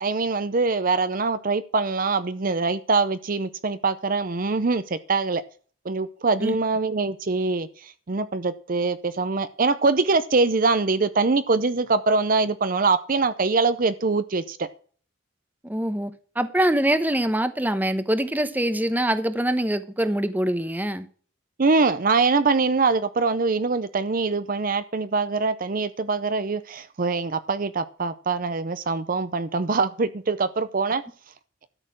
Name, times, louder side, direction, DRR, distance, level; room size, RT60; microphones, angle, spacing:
voice 1, 0.0-5.4 5.8-14.7 21.6-31.0, right 4 dB, 45° right, 0.6 m, -23 dB
voice 2, 15.6-21.1, right 1 dB, 10° right, 0.9 m, -24 dB
13.0 x 6.5 x 6.2 m
head